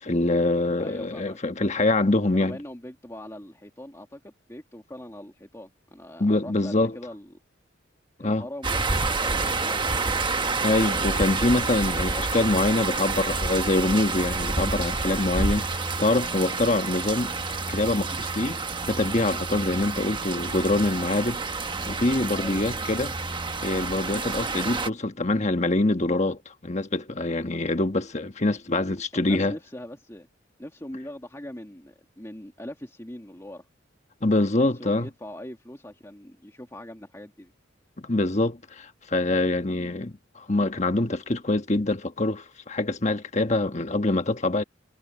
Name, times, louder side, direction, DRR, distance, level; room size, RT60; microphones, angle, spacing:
voice 1, 0.0-2.6 6.2-7.0 8.2-8.4 10.6-17.3 17.7-21.4 21.9-23.2 23.6-29.5 34.2-35.1 38.0-44.6, left 2 dB, 35° left, 1.3 m, -25 dB
voice 2, 0.8-1.4 2.3-7.3 8.2-10.2 22.3-22.7 29.1-30.3 30.6-33.7 34.3-37.5, left 1 dB, 15° left, 1.9 m, -41 dB
sound 1, 8.6-24.9, right 3 dB, 25° right, 1.2 m, -28 dB
head